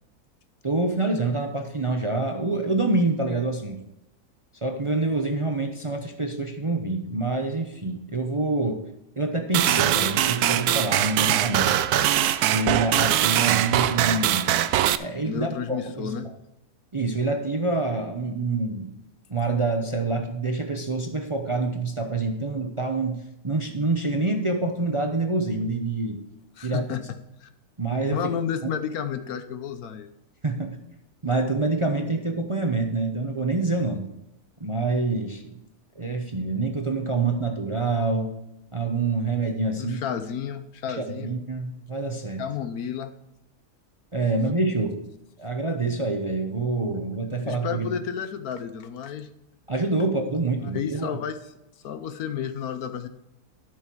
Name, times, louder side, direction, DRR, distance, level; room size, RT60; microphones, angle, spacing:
voice 1, 0.6-3.8 4.6-8.8 9.2-11.8 12.5-14.5 15.0-16.1 16.9-18.9 19.3-26.2 26.6-26.8 27.8-28.2 30.4-30.8 31.2-34.1 34.6-35.5 36.0-38.4 38.7-40.0 41.0-42.4 44.1-45.1 45.4-47.9 49.7-51.2, right 3 dB, 30° right, 4 dB, 0.7 m, -26 dB
sound 1, 9.5-15.0, right 12 dB, 80° right, 1.1 m, -22 dB
voice 2, 15.2-16.3 26.6-27.5 28.1-30.1 39.8-41.3 42.4-43.1 47.4-49.3 50.7-51.4 51.8-53.1, left 8 dB, 75° left, 9 dB, 1.3 m, -31 dB
12.5 x 6.6 x 4.6 m, 0.90 s
omnidirectional pair, 1.6 m